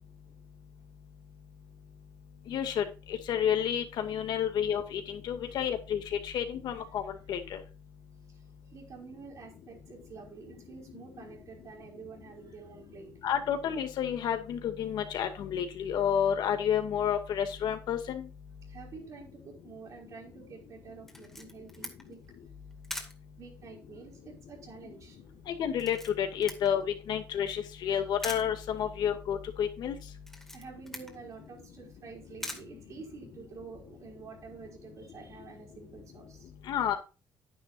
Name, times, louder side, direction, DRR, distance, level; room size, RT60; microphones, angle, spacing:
voice 1, 2.5-2.8 3.3-7.0 7.3-7.6 13.2-18.2 25.5-29.9 36.7-37.0, left 9 dB, 70° left, 6 dB, 2.3 m, -30 dB
voice 2, 8.7-13.1 18.7-22.2 23.4-25.2 30.5-36.5, right 5 dB, 50° right, -4 dB, 4.6 m, -48 dB
Camera, 21.1-33.6, left 1 dB, 5° left, 2.2 m, -47 dB
10.0 x 10.0 x 2.6 m, 0.32 s
cardioid pair, 120°, 8 cm